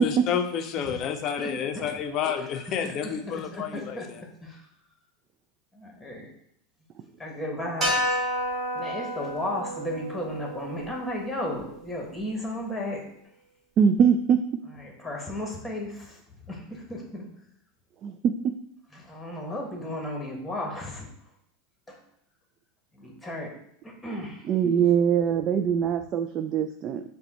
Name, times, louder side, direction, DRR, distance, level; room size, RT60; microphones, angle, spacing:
voice 1, 0.0-4.2, left 8 dB, 45° left, 8 dB, 0.5 m, -30 dB
voice 2, 1.4-1.9 2.8-4.6 5.7-6.3 7.2-8.2 8.7-13.0 14.8-16.2 16.4-17.2 18.9-21.1 21.9-22.0 22.9-23.5 23.8-24.4, left 1 dB, 5° left, 0 dB, 1.2 m, -34 dB
sound 1, 7.8-12.2, equal, 20° right, 1.3 m, -31 dB
voice 3, 13.8-14.4 18.0-18.5 24.4-27.0, right 7 dB, 40° right, 8 dB, 0.3 m, -22 dB
5.5 x 2.2 x 4.1 m, 0.73 s
supercardioid pair, 120°, 0 cm